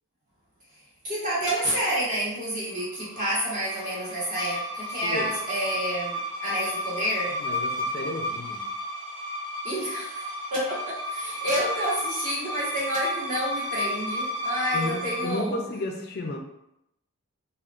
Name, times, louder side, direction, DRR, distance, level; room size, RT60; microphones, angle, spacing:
voice 1, 1.0-7.3 9.6-15.6, equal, 40° right, -9 dB, 1.0 m, -29 dB
sound 1, 2.8-15.5, left 1 dB, 75° right, 1.0 m, -33 dB
voice 2, 5.0-5.3 7.3-8.6 14.7-16.4, left 2 dB, 45° left, 3 dB, 0.4 m, -32 dB
3.5 x 2.3 x 2.4 m, 0.81 s
head